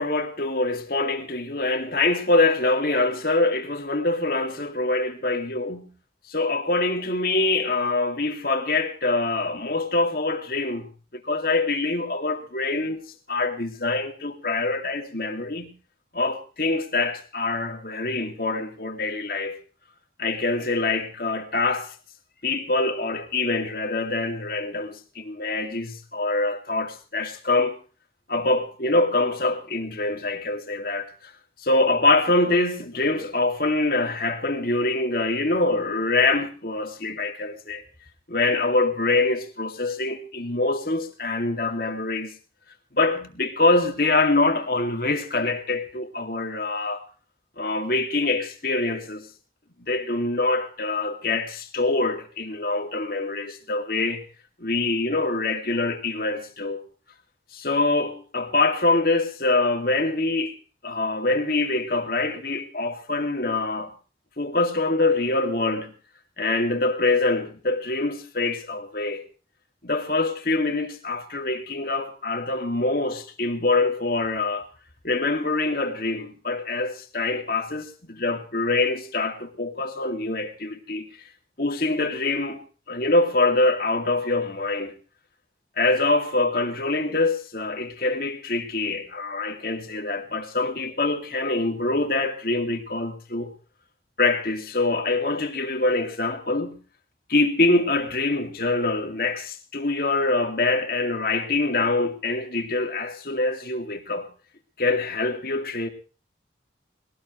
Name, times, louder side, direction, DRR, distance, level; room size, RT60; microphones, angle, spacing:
voice 1, 0.0-5.9 6.3-13.0 13.3-15.7 16.1-19.6 20.2-21.9 22.4-27.8 28.3-31.3 31.6-37.8 38.3-42.3 42.9-47.0 47.6-49.3 49.8-54.3 54.6-56.8 57.5-60.6 60.8-63.9 64.4-65.9 66.4-69.2 69.8-74.7 75.0-81.1 81.6-82.6 82.9-85.0 85.8-93.5 94.2-96.8 97.3-104.3 104.8-105.9, left 2 dB, 55° left, 2.4 m, -24 dB
21.5 x 18.0 x 3.2 m
head